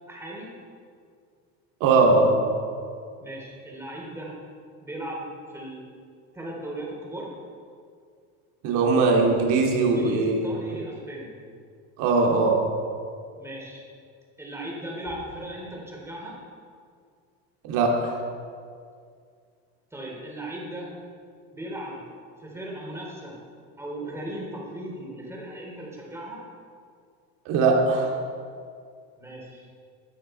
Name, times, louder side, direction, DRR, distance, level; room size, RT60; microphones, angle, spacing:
voice 1, 0.1-0.5 3.2-4.3 4.8-5.8 6.3-7.3 9.8-11.3 13.3-13.8 14.4-16.4 19.9-20.9 21.5-22.0 22.4-23.4 23.8-26.4 29.2-29.7, right 1 dB, 10° right, -3 dB, 3.6 m, -37 dB
voice 2, 1.8-2.4 8.6-10.5 12.0-12.6 17.6-18.2 27.5-28.2, right 3 dB, 60° right, 0 dB, 2.6 m, -20 dB
16.0 x 9.0 x 4.5 m, 2.2 s
supercardioid pair, 130°, 34 cm